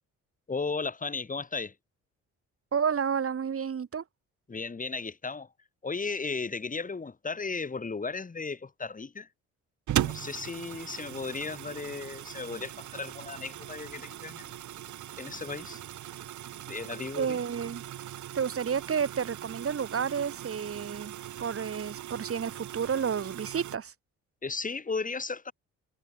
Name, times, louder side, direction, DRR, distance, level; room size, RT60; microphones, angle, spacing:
voice 1, 0.5-1.7 4.5-5.5 5.8-9.3 10.0-14.5 15.2-15.8 16.7-17.4 24.4-25.5, left 4 dB, 25° left, 3.3 m, -35 dB
voice 2, 2.7-4.0 17.2-17.8 18.3-21.1 21.4-23.9, right 7 dB, 50° right, 7.4 m, -30 dB
sound 1, 9.9-23.8, right 12 dB, 75° right, 4.0 m, -39 dB
cardioid pair, 90°, 30 cm